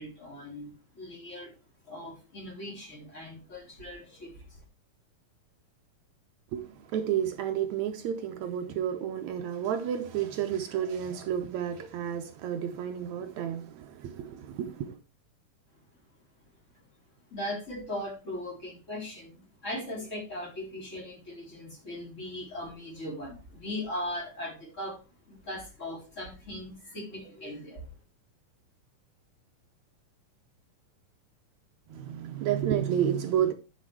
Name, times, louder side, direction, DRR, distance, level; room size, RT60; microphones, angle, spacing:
voice 1, 0.0-1.6 1.9-4.6 17.3-25.0 25.2-27.9, left 1 dB, 20° left, 3.9 m, -39 dB
voice 2, 6.5-15.0 31.9-33.5, right 9 dB, 70° right, 1.9 m, -31 dB
10.0 x 6.4 x 4.7 m
omnidirectional pair, 3.8 m